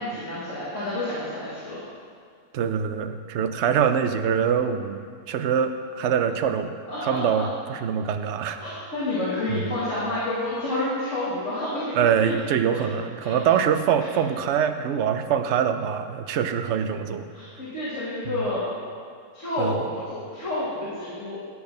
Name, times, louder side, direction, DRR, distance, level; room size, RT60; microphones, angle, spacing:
voice 1, 0.0-1.8 6.9-7.4 8.6-11.9 12.2-12.3 12.7-12.9 13.2-13.4 17.3-18.6 19.3-21.4, left 1 dB, 55° left, -9 dB, 2.3 m, -29 dB
voice 2, 2.5-8.6 9.5-9.7 11.9-17.3 18.3-18.4 19.6-19.8, right 8 dB, 60° right, 8 dB, 0.8 m, -24 dB
11.0 x 7.1 x 5.3 m, 2.1 s
omnidirectional pair, 1.6 m